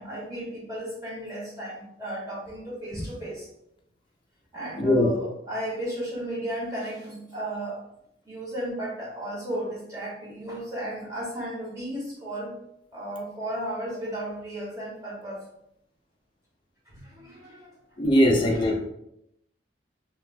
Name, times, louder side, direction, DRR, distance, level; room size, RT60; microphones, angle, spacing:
voice 1, 0.0-3.5 4.5-7.8 8.2-12.6 12.9-15.4 16.9-17.7 18.5-18.7, right 1 dB, 20° right, -7 dB, 0.9 m, -34 dB
voice 2, 4.8-5.1 18.0-18.8, left 1 dB, 25° left, 0 dB, 0.4 m, -20 dB
2.5 x 2.1 x 3.1 m, 0.78 s
head